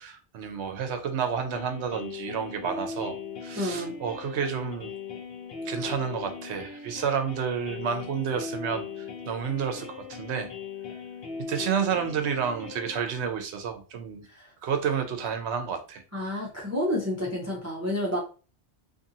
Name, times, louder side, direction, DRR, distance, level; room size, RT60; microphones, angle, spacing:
voice 1, 0.0-4.9 5.6-10.5 11.5-14.2 14.6-16.0, right 7 dB, 70° right, 6 dB, 0.8 m, -30 dB
sound 1, 1.5-13.0, left 5 dB, 60° left, 0.7 m, -39 dB
voice 2, 3.5-4.0 14.3-14.5 16.1-18.2, left 1 dB, 20° right, -2 dB, 0.4 m, -30 dB
2.6 x 2.6 x 2.7 m, 0.36 s
omnidirectional pair, 1.2 m